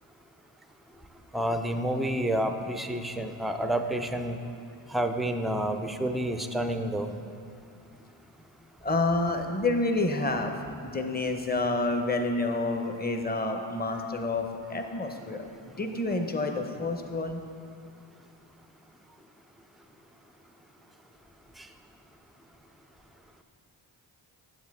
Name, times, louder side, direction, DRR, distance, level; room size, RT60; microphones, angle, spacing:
voice 1, 1.3-4.4 4.9-7.1, right 1 dB, ahead, 7 dB, 0.3 m, -29 dB
voice 2, 8.8-10.5 10.8-14.4 14.7-17.4, left 2 dB, 20° left, 5 dB, 0.7 m, -28 dB
7.3 x 7.2 x 3.5 m, 2.5 s
supercardioid pair, 40°, 49 cm